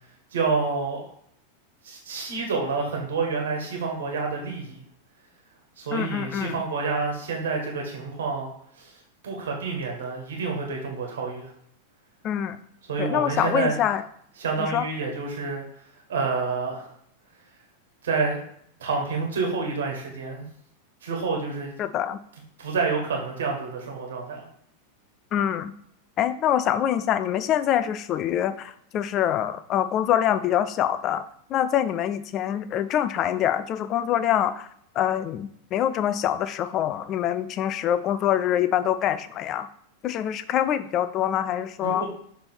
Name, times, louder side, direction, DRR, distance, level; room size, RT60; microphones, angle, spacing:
voice 1, 0.3-1.1 1.8-4.8 5.8-8.5 8.8-9.0 9.2-11.5 12.9-13.8 14.4-15.6 16.1-16.9 18.0-18.4 18.8-20.4 21.0-21.7 22.6-24.5 41.8-42.1, right 4 dB, 60° right, 1 dB, 1.5 m, -28 dB
voice 2, 5.9-6.6 12.2-12.6 13.0-14.0 14.6-14.9 21.8-22.2 25.3-25.7 26.2-31.2 31.5-34.7 35.0-39.7 40.0-42.0, left 10 dB, 35° left, 13 dB, 0.4 m, -25 dB
6.7 x 3.4 x 4.4 m, 0.67 s
figure-of-eight pair, 90°, 0 cm